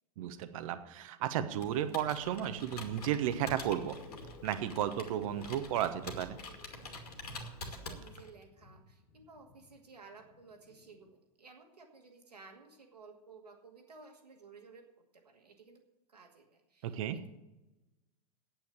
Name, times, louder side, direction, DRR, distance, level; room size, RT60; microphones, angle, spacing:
voice 1, 0.2-4.0 4.4-6.4 16.8-17.2, right 11 dB, 60° right, 10 dB, 1.1 m, -33 dB
Computer keyboard, 1.5-8.4, left 2 dB, 75° left, 2.3 m, -46 dB
sound 1, 2.5-11.1, left 5 dB, 55° left, 1.6 m, -57 dB
voice 2, 7.6-14.8 15.2-15.8 16.1-17.3, right 4 dB, 85° right, 3 dB, 2.3 m, -56 dB
9.0 x 9.0 x 8.8 m, 0.98 s
hypercardioid pair, 95°, 20 cm